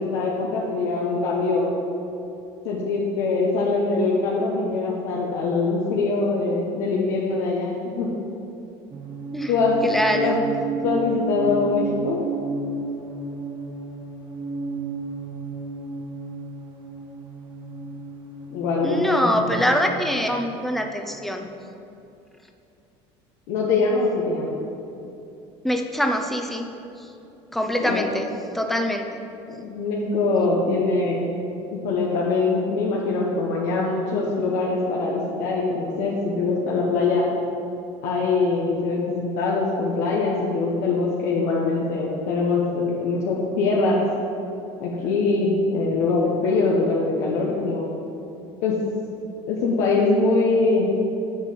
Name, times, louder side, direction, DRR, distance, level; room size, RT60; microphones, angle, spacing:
voice 1, 0.0-1.7 2.6-8.1 9.5-9.8 10.2-10.4 10.8-12.2 18.5-19.4 23.5-24.5 27.8-28.1 29.5-31.3 31.7-37.3 38.0-44.0 44.8-47.9 48.6-48.8 49.5-50.9, left 3 dB, 85° left, -4 dB, 1.2 m, -23 dB
sound 1, 8.9-20.9, right 2 dB, 40° right, 1.3 m, -32 dB
voice 2, 9.8-10.4 18.8-21.5 25.6-26.7 27.5-28.3 28.5-29.2, equal, ahead, 4 dB, 0.8 m, -24 dB
7.0 x 5.8 x 7.6 m, 2.8 s
cardioid pair, 120°, 12 cm